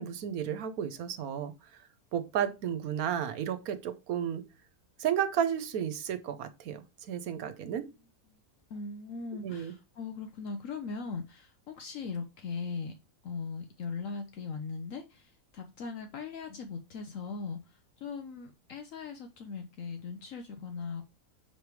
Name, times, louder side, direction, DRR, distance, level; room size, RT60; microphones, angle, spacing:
voice 1, 0.0-1.5 2.1-4.4 5.0-7.9 9.4-9.7, right 9 dB, 80° right, 1.2 m, -32 dB
voice 2, 8.7-12.9 13.2-21.0, left 5 dB, 65° left, 1.0 m, -39 dB
6.5 x 3.3 x 4.6 m
omnidirectional pair, 1.5 m